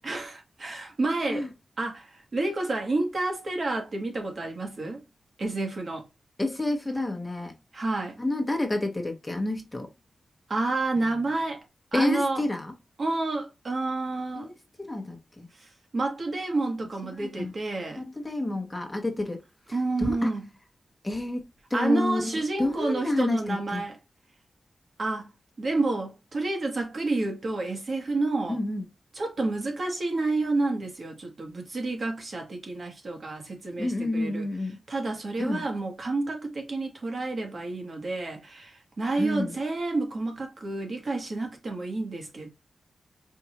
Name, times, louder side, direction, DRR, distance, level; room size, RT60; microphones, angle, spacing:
voice 1, 0.0-1.5 1.8-5.0 5.4-6.1 7.7-8.2 10.5-11.6 11.9-12.4 13.0-14.5 15.5-18.0 19.7-20.4 21.7-24.0 25.0-25.3 25.6-28.6 29.2-34.5 34.9-42.5, right 2 dB, 50° right, 1.3 m, -29 dB
voice 2, 6.4-7.5 8.2-9.9 11.0-11.1 11.9-12.7 14.4-14.5 14.8-15.5 17.1-17.5 17.9-19.4 19.7-20.3 21.0-22.3 22.6-23.8 28.5-28.8 33.8-34.8 35.4-35.6 39.2-39.5, left 2 dB, 15° left, 1.0 m, -29 dB
4.6 x 2.6 x 2.9 m
wide cardioid pair, 105°, 0 cm